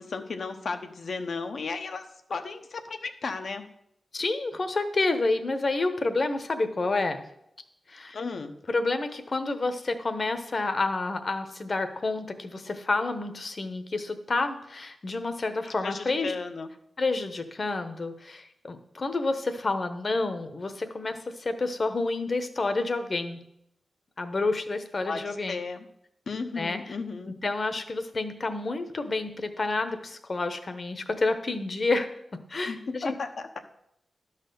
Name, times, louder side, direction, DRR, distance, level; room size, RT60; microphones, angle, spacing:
voice 1, 0.0-3.6 8.1-8.5 15.8-16.7 25.0-25.8 26.3-27.3 32.7-33.6, left 4 dB, 70° left, 7 dB, 0.9 m, -34 dB
voice 2, 4.1-7.2 7.9-8.2 8.7-16.3 17.0-23.4 24.2-25.6 26.6-27.0 27.4-33.1, left 3 dB, 45° left, 9 dB, 1.0 m, -29 dB
11.5 x 4.2 x 6.7 m, 0.77 s
wide cardioid pair, 80°, 0 cm